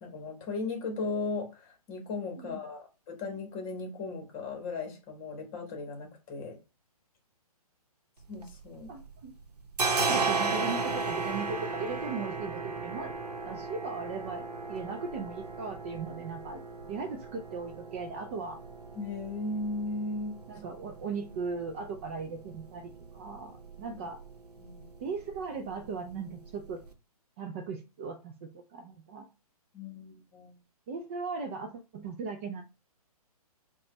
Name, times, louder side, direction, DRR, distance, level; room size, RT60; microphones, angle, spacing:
voice 1, 0.0-6.6 8.3-8.9 18.9-20.4 24.6-24.9 29.7-30.5, left 3 dB, 25° left, 1.3 m, -37 dB
sound 1, 8.2-9.1 9.4-26.9, right 4 dB, 85° right, 0.8 m, -36 dB
voice 2, 8.9-9.3 10.0-13.1 13.5-16.6 16.9-18.6 20.5-24.2 25.0-26.8 27.4-29.3 30.9-32.6, right 4 dB, 20° right, 0.3 m, -38 dB
5.5 x 2.3 x 3.0 m
figure-of-eight pair, 135°, 20 cm